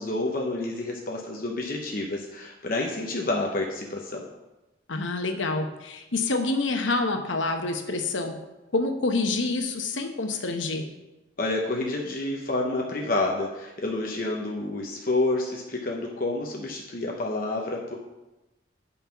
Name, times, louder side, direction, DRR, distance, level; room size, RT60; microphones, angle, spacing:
voice 1, 0.0-4.2 11.4-18.0, left 2 dB, 45° left, 0 dB, 0.9 m, -29 dB
voice 2, 4.9-8.4 8.7-10.8, left 3 dB, 85° left, 5 dB, 1.0 m, -27 dB
8.2 x 5.5 x 5.8 m, 1.0 s
head